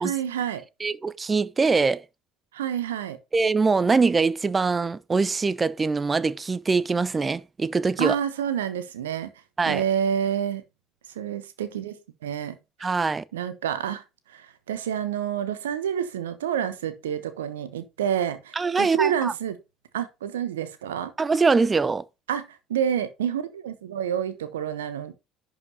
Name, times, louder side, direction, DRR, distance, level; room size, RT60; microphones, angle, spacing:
voice 1, 0.0-0.6 2.5-3.2 8.0-9.3 9.7-10.6 11.1-12.0 12.2-12.6 13.3-14.0 14.3-19.6 19.9-21.1 22.3-25.1, right 9 dB, 70° right, 1.1 m, -28 dB
voice 2, 0.8-2.0 3.3-8.2 9.6-9.8 12.8-13.2 18.6-19.3 21.2-22.0, right 4 dB, 25° right, 0.6 m, -23 dB
11.0 x 5.0 x 4.0 m
figure-of-eight pair, 60°, 0 cm